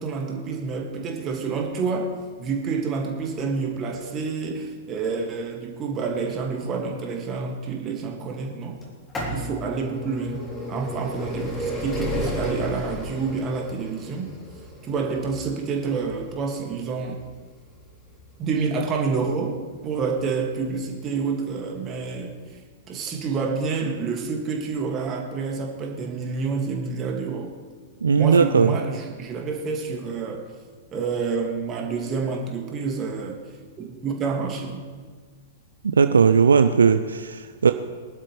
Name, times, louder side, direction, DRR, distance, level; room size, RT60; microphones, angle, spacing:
voice 1, 0.0-2.1 2.4-8.8 9.3-14.3 14.8-17.2 18.4-19.6 19.8-22.4 22.9-27.5 28.1-30.4 30.9-33.4 33.8-34.9, right 5 dB, 25° right, 1 dB, 2.2 m, -28 dB
sound 1, 8.8-20.5 21.3-21.4 22.3-22.4 22.6-22.7, equal, 15° left, 3.4 m, -33 dB
voice 2, 28.0-28.8 35.8-37.7, right 6 dB, 70° right, 9 dB, 0.5 m, -18 dB
22.0 x 11.5 x 3.4 m, 1.5 s
figure-of-eight pair, 100°, 0 cm